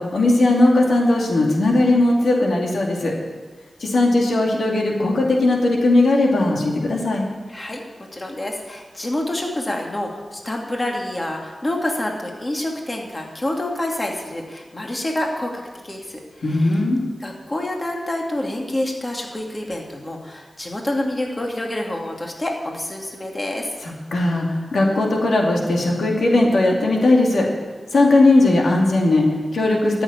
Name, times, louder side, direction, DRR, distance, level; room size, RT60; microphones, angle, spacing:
voice 1, 0.0-3.1 3.8-7.3 16.4-17.0 23.8-27.5 27.9-30.0, left 2 dB, 85° left, -1 dB, 2.6 m, -18 dB
voice 2, 7.5-7.8 8.1-15.5 15.8-16.2 16.5-16.8 17.2-23.7, left 1 dB, 30° left, 0 dB, 2.5 m, -27 dB
14.0 x 7.0 x 9.8 m, 1.3 s
cardioid pair, 65°, 0 cm